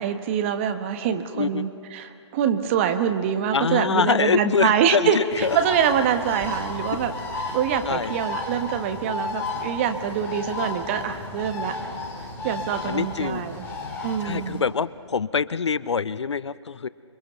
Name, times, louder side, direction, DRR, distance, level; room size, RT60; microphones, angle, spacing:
voice 1, 0.0-7.1 7.5-11.8 12.4-13.6 14.0-14.6, right 8 dB, 25° right, 8 dB, 1.2 m, -25 dB
voice 2, 1.3-1.7 3.5-5.6 7.8-8.1 12.9-13.5 14.2-16.9, left 5 dB, 65° left, 18 dB, 0.6 m, -24 dB
Bird, 5.3-14.6, left 3 dB, 15° left, 2.9 m, -33 dB
27.0 x 23.5 x 5.8 m, 2.6 s
figure-of-eight pair, 145°, 15 cm